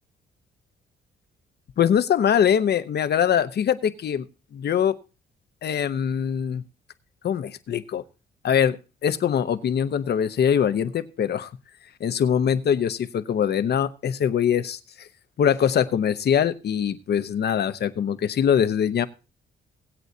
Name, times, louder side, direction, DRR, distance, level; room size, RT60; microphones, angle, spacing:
voice 1, 1.8-4.2 4.5-5.0 5.6-6.6 7.2-8.0 8.4-11.5 12.0-15.1 15.4-19.1, left 8 dB, 55° left, 12 dB, 0.9 m, -23 dB
21.5 x 8.0 x 2.8 m, 0.31 s
cardioid pair, 90°, 20 cm